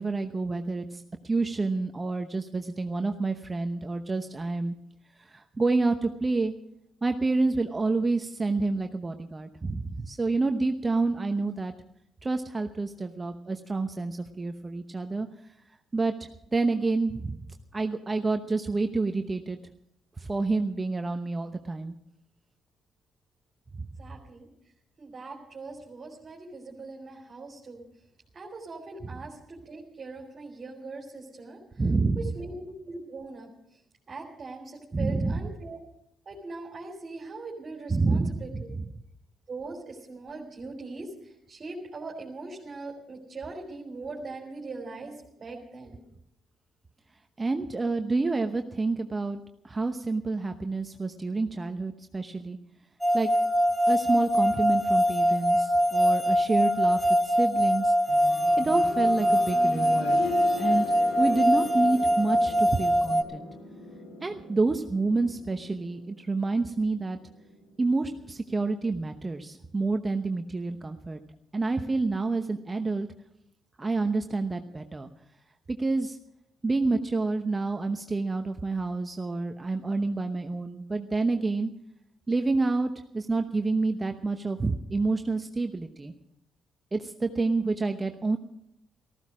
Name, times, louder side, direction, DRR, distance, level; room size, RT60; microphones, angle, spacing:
voice 1, 0.0-4.7 5.2-6.5 7.0-11.7 12.2-15.3 15.9-16.1 16.5-17.4 17.7-19.6 20.2-21.9 31.8-32.3 34.9-35.5 37.9-38.8 47.4-52.6 53.1-53.3 53.9-57.9 58.6-60.3 60.6-60.9 61.2-63.5 64.2-67.2 67.8-71.2 71.5-73.1 73.8-75.1 75.7-76.2 76.6-81.7 82.3-86.1 86.9-88.4, right 3 dB, 25° right, 6 dB, 0.9 m, -28 dB
voice 2, 24.0-24.5 25.0-27.8 28.3-31.8 32.2-33.5 34.1-35.8 36.2-38.7 39.5-45.1 45.4-46.0, right 3 dB, 40° right, -1 dB, 3.3 m, -41 dB
sound 1, 53.0-63.2, equal, ahead, 1.5 m, -23 dB
sound 2, 58.1-68.9 70.2-70.3, left 3 dB, 85° left, 2.8 m, -41 dB
14.5 x 14.0 x 6.2 m, 0.78 s
cardioid pair, 80°, 0 cm